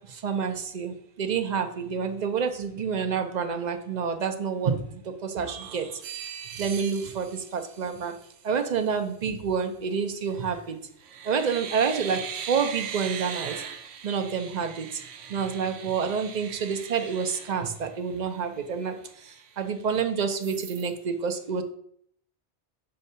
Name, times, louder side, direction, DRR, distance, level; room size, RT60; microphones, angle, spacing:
voice 1, 0.1-5.9 6.6-8.1 8.4-10.8 11.2-13.6 14.0-15.0 15.3-21.6, right 6 dB, 50° right, 6 dB, 0.6 m, -28 dB
sound 1, 5.4-8.5 10.3-10.6 11.0-18.3 18.7-18.8 19.1-20.0 20.4-20.9, right 8 dB, 85° right, 0.9 m, -40 dB
6.6 x 2.7 x 5.4 m, 0.67 s
omnidirectional pair, 1.2 m